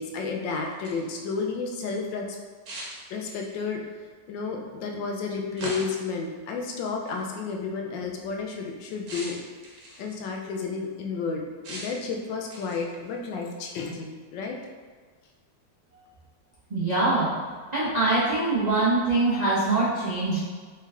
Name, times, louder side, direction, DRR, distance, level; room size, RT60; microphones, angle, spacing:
voice 1, 0.0-2.3 3.1-3.8 4.3-9.4 10.0-14.6, left 4 dB, 85° left, 1 dB, 1.3 m, -32 dB
sound 1, 0.6-1.2 2.7-3.6 5.6-6.1 7.1-7.3 9.1-10.1 11.6-12.1 12.5-13.0, right 1 dB, 55° right, 1.0 m, -40 dB
voice 2, 16.7-17.3 17.7-20.4, right 2 dB, 70° right, -9 dB, 0.4 m, -23 dB
3.6 x 3.3 x 3.3 m, 1.5 s
omnidirectional pair, 1.9 m